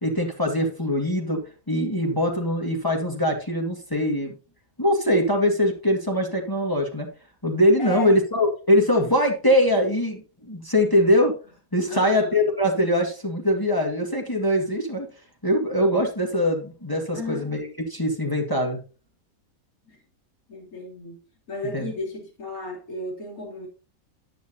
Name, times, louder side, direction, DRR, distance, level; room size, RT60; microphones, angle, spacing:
voice 1, 0.0-4.3 4.8-7.1 7.4-11.3 11.7-15.1 15.4-18.8 21.7-21.9, left 1 dB, 15° left, 2.1 m, -22 dB
voice 2, 7.8-8.1 11.9-12.5 17.1-17.5 19.9-20.0 20.5-21.2 21.5-23.7, left 2 dB, 65° left, 3.7 m, -34 dB
10.5 x 9.2 x 2.8 m
omnidirectional pair, 1.6 m